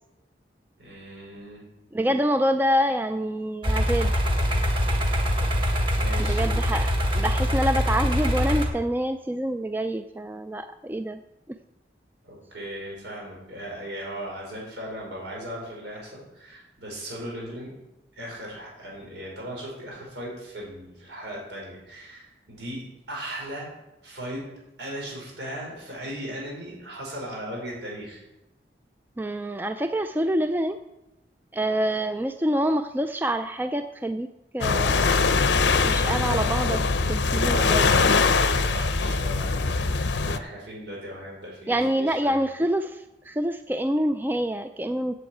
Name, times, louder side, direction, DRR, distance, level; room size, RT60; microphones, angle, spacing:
voice 1, 0.8-1.6 5.9-6.5 12.2-17.7 18.1-23.7 24.0-24.5 24.8-28.2 37.3-42.4, equal, 90° right, -3 dB, 5.0 m, -37 dB
voice 2, 1.9-4.1 6.2-11.2 11.5-11.6 29.2-30.8 31.5-34.3 34.5-35.2 35.8-36.8 37.1-37.9 41.7-45.1, equal, 10° right, 8 dB, 0.3 m, -26 dB
sound 1, 3.6-8.7, equal, 30° right, 1.5 m, -23 dB
sound 2, 34.6-40.4, left 4 dB, 90° left, 0.7 m, -22 dB
8.1 x 7.7 x 8.4 m, 0.96 s
head